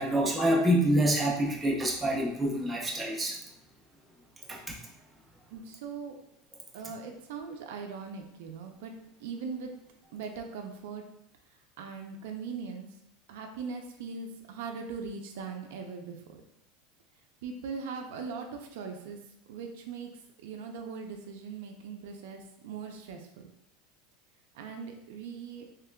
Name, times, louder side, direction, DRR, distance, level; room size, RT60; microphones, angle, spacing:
voice 1, 0.0-3.4 4.5-4.7, right 1 dB, 10° right, -3 dB, 0.6 m, -26 dB
voice 2, 5.5-6.2 6.7-9.7 10.1-11.1 11.8-13.0 13.3-16.4 17.4-19.2 19.5-23.5 24.5-25.7, right 5 dB, 75° right, 4 dB, 0.5 m, -40 dB
3.6 x 3.1 x 2.2 m, 0.78 s
supercardioid pair, 165°, 0 cm